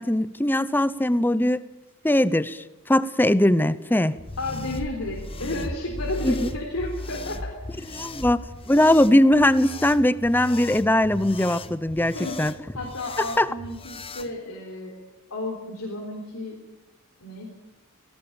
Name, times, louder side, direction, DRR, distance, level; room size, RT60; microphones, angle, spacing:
voice 1, 0.0-1.6 2.0-4.1 6.2-6.5 7.9-8.4 8.7-12.5 13.2-13.5, left 1 dB, 10° left, 16 dB, 0.7 m, -20 dB
sound 1, 4.1-14.3, left 2 dB, 25° left, 1.1 m, -37 dB
voice 2, 4.4-7.9 12.0-12.4 12.7-15.0 15.3-16.6 17.2-17.5, left 2 dB, 75° left, 0 dB, 3.8 m, -32 dB
19.0 x 18.0 x 8.7 m, 1.0 s
head